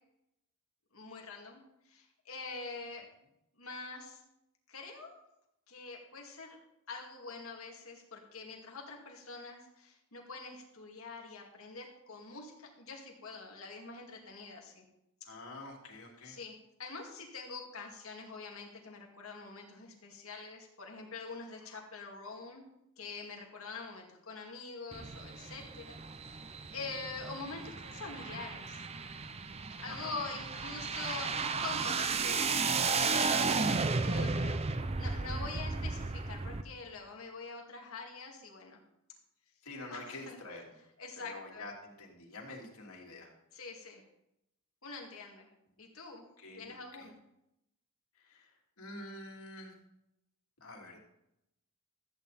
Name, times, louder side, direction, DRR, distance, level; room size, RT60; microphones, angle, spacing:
voice 1, 0.9-3.1 3.5-4.2 4.7-5.1 5.7-6.6 6.9-14.9 16.2-16.5 16.8-22.6 23.0-26.0 26.3-26.4 26.7-28.8 29.8-32.9 33.9-34.6 35.0-38.8 39.9-40.4 41.0-41.6 43.5-44.0 44.8-45.5 45.8-46.2 46.6-47.1, left 4 dB, 70° left, 0 dB, 2.3 m, -45 dB
voice 2, 15.3-16.4 21.6-21.8 29.9-30.1 33.9-34.3 35.3-35.6 39.6-40.6 41.2-43.3 46.4-47.1 48.2-49.7 50.6-51.0, left 2 dB, 85° left, -1 dB, 3.1 m, -47 dB
sound 1, 24.9-36.6, right 4 dB, 30° right, 0.6 m, -34 dB
14.0 x 8.9 x 4.2 m, 0.83 s
head